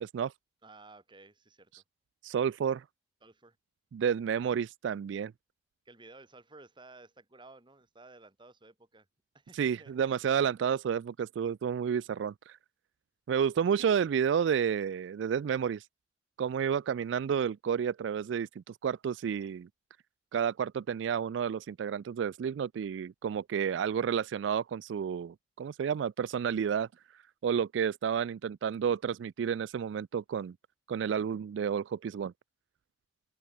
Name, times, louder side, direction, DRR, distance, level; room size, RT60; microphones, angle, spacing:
voice 1, 0.0-0.3 2.2-2.8 3.9-5.3 9.5-12.6 13.3-15.9 16.4-19.7 20.3-26.9 27.4-30.5 30.9-32.3, right 7 dB, 75° right, 0.3 m, -30 dB
voice 2, 0.6-1.7 3.2-3.6 5.9-9.1 9.3-10.1, right 2 dB, 25° right, 2.3 m, -54 dB
open air
head